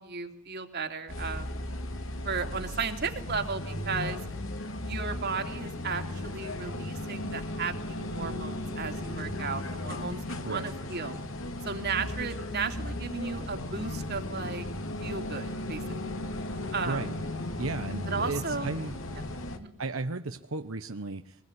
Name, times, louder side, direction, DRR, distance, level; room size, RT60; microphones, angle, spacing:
voice 1, 0.0-1.5 2.2-4.2 4.8-11.3 11.6-14.7 15.0-15.8 16.7-17.0 18.0-18.7 19.5-19.7, right 5 dB, 55° right, 5 dB, 3.0 m, -35 dB
sound 1, 1.1-19.6, left 1 dB, 70° left, 2.8 m, -36 dB
voice 2, 17.6-19.0 19.8-21.4, right 3 dB, 85° right, 7 dB, 1.2 m, -34 dB
23.5 x 20.5 x 9.8 m, 0.79 s
head